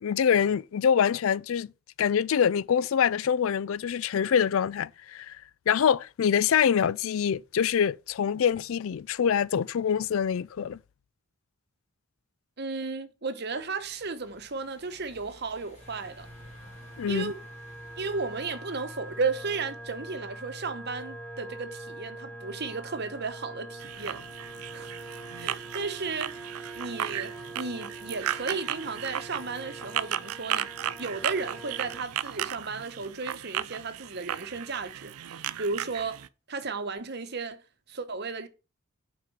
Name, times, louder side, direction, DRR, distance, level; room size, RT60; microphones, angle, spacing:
voice 1, 0.0-1.7 2.0-5.4 5.7-10.8 17.0-17.3, left 8 dB, 65° left, 0.3 m, -25 dB
voice 2, 12.6-16.3 17.1-17.4 18.0-24.2 24.7-24.9 25.3-26.3 26.7-30.7 31.0-36.2 36.5-37.6 37.9-38.5, right 4 dB, 50° right, 1.0 m, -34 dB
sound 1, 13.5-26.1, left 1 dB, 35° left, 4.0 m, -58 dB
sound 2, 15.8-32.0, right 2 dB, 5° left, 0.8 m, -44 dB
sound 3, 23.8-36.3, right 11 dB, 80° right, 0.5 m, -35 dB
7.7 x 5.1 x 5.7 m
head